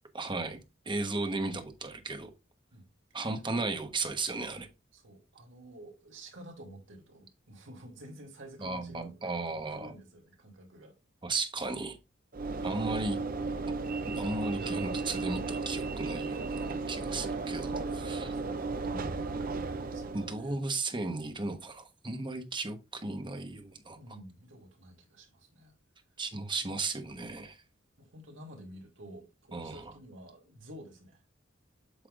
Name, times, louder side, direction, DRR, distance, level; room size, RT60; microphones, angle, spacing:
voice 1, 0.1-0.6 0.8-2.3 3.1-4.7 8.6-9.9 11.2-12.0 12.6-13.2 14.0-18.3 20.1-24.0 26.2-27.6 29.5-29.9, right 3 dB, 25° right, 1.1 m, -35 dB
voice 2, 3.2-3.6 4.9-9.4 9.7-10.9 16.9-17.4 17.8-17.9 18.3-20.6 24.0-25.7 26.6-26.8 28.0-31.2, right 1 dB, 70° right, 2.9 m, -51 dB
Train / Engine / Alarm, 12.3-20.6, right 3 dB, 45° right, 0.7 m, -35 dB
8.3 x 5.8 x 2.5 m
head